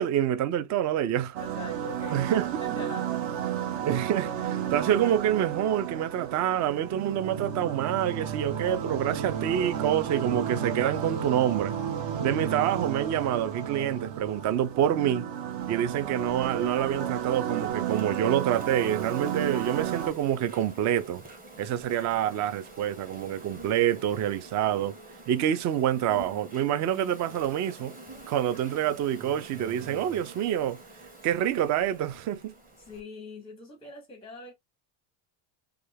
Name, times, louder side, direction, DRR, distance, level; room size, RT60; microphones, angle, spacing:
voice 1, 0.0-1.4 2.1-2.5 3.8-11.7 12.2-15.3 15.7-21.2 21.6-25.0 25.3-28.0 28.3-30.8 31.2-32.5, right 10 dB, 40° right, 0.4 m, -27 dB
sound 1, 1.3-20.1, right 9 dB, 60° right, 0.9 m, -32 dB
voice 2, 1.4-2.3 2.6-3.2 32.8-34.5, left 3 dB, 10° left, 0.6 m, -43 dB
Insect, 15.6-33.0, right 1 dB, 15° right, 0.9 m, -48 dB
3.3 x 2.4 x 3.2 m
cardioid pair, 125°, 50 cm